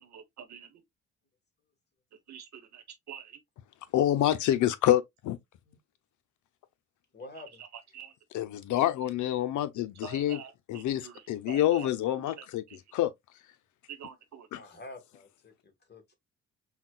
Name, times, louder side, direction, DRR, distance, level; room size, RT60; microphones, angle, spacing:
voice 1, 0.1-0.7 2.3-2.4 2.7-3.3 7.9-8.1 10.0-10.5 11.5-11.9 13.9-14.5, right 8 dB, 65° right, 1.1 m, -45 dB
voice 2, 3.9-5.4 8.3-10.4 10.7-12.6 12.9-13.1 14.5-14.6, left 12 dB, 75° left, 0.6 m, -27 dB
voice 3, 7.1-7.6 14.5-16.2, left 2 dB, 35° left, 1.6 m, -48 dB
5.7 x 2.3 x 2.3 m
cardioid pair, 90°, 30 cm